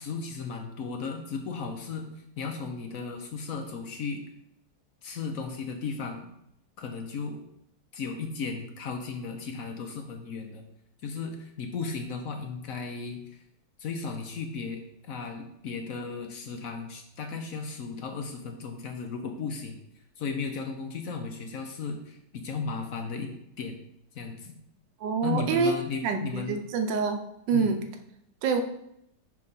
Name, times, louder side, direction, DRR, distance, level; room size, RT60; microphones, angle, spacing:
voice 1, 0.0-4.2 5.0-6.3 6.8-7.4 7.9-10.6 11.0-13.4 13.8-19.8 20.2-23.8 24.1-24.6 25.2-26.6 27.5-27.7, left 4 dB, 60° left, 4 dB, 1.0 m, -35 dB
voice 2, 25.0-25.8 26.0-27.8 28.4-28.6, right 5 dB, 85° right, 6 dB, 1.4 m, -26 dB
4.8 x 4.8 x 5.4 m, 0.79 s
omnidirectional pair, 1.9 m